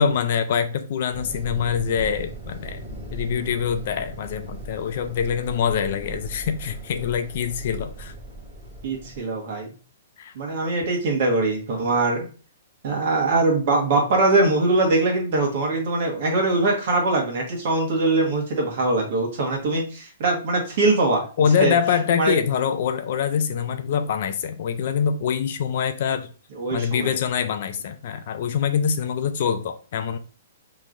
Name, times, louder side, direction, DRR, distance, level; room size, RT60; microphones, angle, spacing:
voice 1, 0.0-2.8 3.1-8.1 10.2-10.3 21.4-26.3 26.7-30.2, left 7 dB, 40° left, 0.4 m, -24 dB
sound 1, 1.1-9.2, right 1 dB, 15° right, 1.6 m, -38 dB
voice 2, 8.8-9.7 10.3-12.2 12.8-21.2 21.6-21.8 22.2-22.4 26.6-27.2, right 2 dB, 40° right, 1.4 m, -22 dB
5.6 x 3.1 x 2.5 m
hypercardioid pair, 175°, 0 cm